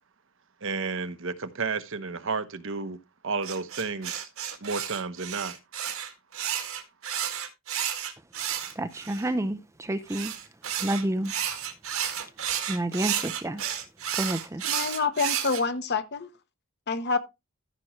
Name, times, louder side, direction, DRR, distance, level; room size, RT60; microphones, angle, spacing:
voice 1, 0.6-3.0 3.2-4.3 4.6-5.6, right 4 dB, 60° right, 1.0 m, -32 dB
sound 1, 3.4-9.3 10.1-15.6, right 9 dB, 80° right, 1.9 m, -32 dB
voice 2, 8.8-10.3 10.8-11.3 12.7-13.6 14.1-14.6, right 1 dB, 15° right, 0.5 m, -29 dB
voice 3, 14.6-16.3 16.9-17.2, left 4 dB, 50° left, 1.0 m, -27 dB
14.0 x 6.1 x 3.1 m
head